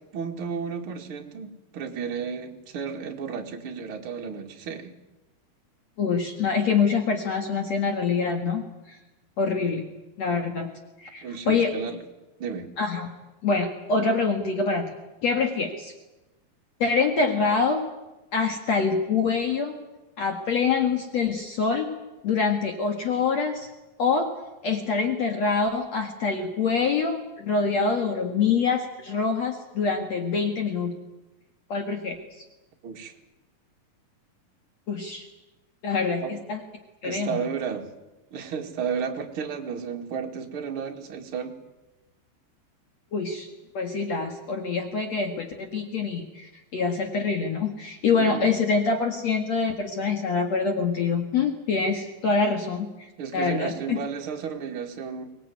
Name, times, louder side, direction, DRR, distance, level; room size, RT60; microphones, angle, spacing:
voice 1, 0.1-4.9 11.2-12.0 12.4-12.7 32.8-33.1 36.2-36.3 37.0-37.9 38.3-41.5 48.2-48.4 53.2-55.2, right 6 dB, 40° right, 3 dB, 2.6 m, -33 dB
voice 2, 6.0-9.0 9.4-9.9 10.2-10.7 11.0-11.7 12.8-13.1 13.4-14.8 15.2-15.9 16.8-17.8 18.3-19.7 20.2-21.9 22.2-23.7 24.0-24.3 24.6-30.9 31.7-32.4 34.9-35.3 35.8-36.6 37.0-37.5 43.1-43.5 43.7-54.0, left 5 dB, 50° left, 4 dB, 2.6 m, -25 dB
24.0 x 19.5 x 9.5 m, 1.1 s
omnidirectional pair, 4.4 m